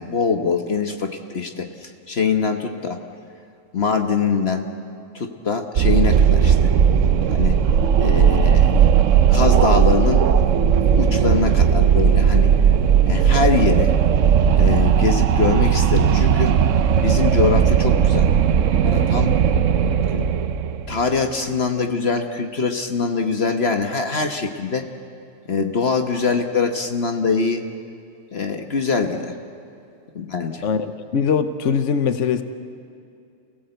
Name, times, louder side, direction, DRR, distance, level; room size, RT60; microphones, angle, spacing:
voice 1, 0.0-3.0 3.7-4.7 5.1-6.7 7.3-7.6 8.0-8.8 9.3-10.3 10.8-12.5 13.0-14.0 14.6-16.5 17.0-18.3 18.8-19.3 20.1-20.2 20.9-24.9 25.5-27.7 28.3-29.3 30.1-30.7, left 5 dB, 55° left, 5 dB, 1.5 m, -23 dB
Wind, 5.8-21.1, right 8 dB, 75° right, 1.1 m, -16 dB
voice 2, 30.6-32.4, left 6 dB, 70° left, 10 dB, 1.3 m, -21 dB
29.0 x 17.0 x 7.9 m, 2.5 s
omnidirectional pair, 1.3 m